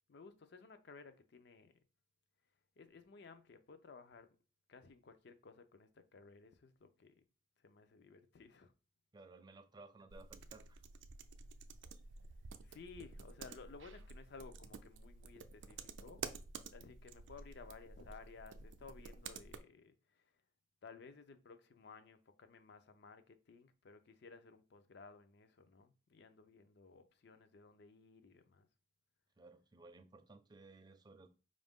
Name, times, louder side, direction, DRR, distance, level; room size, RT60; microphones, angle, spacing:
voice 1, 0.1-1.7 2.8-4.4 4.7-7.2 7.6-8.7 12.6-16.2 16.7-20.3 20.8-28.7, left 4 dB, 65° left, 0.5 m, -57 dB
voice 2, 9.1-10.8 29.4-31.3, right 3 dB, 25° right, 0.4 m, -58 dB
sound 1, 10.1-19.6, right 5 dB, 85° right, 0.4 m, -51 dB
5.0 x 2.5 x 3.5 m
head